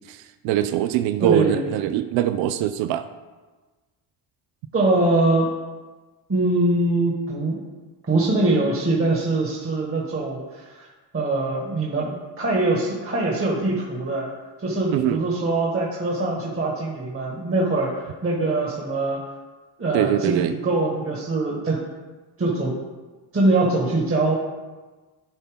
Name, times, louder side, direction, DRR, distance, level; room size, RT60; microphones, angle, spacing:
voice 1, 0.1-3.0 14.9-15.2 19.9-20.5, right 12 dB, 75° right, 10 dB, 0.6 m, -23 dB
voice 2, 1.2-1.6 4.7-5.5 6.3-7.6 8.1-10.9 11.1-14.3 14.6-19.2 19.8-21.8 22.4-22.8 23.3-24.3, right 2 dB, 30° right, -3 dB, 1.7 m, -23 dB
11.0 x 4.3 x 3.6 m, 1.3 s
supercardioid pair, 75°, 46 cm